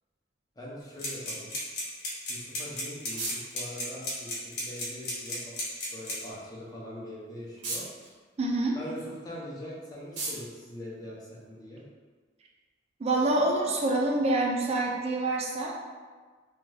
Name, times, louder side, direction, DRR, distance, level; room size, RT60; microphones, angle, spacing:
voice 1, 0.6-1.5 2.3-5.6 5.9-7.9 8.7-11.8, equal, 20° left, -6 dB, 0.5 m, -42 dB
sound 1, 1.0-6.3, left 2 dB, 60° left, 0.8 m, -34 dB
sound 2, 2.4-11.8, right 2 dB, 60° right, 0.7 m, -44 dB
voice 2, 8.4-8.8 13.0-15.7, right 2 dB, 35° right, -1 dB, 0.3 m, -26 dB
2.6 x 2.2 x 3.1 m, 1.4 s
head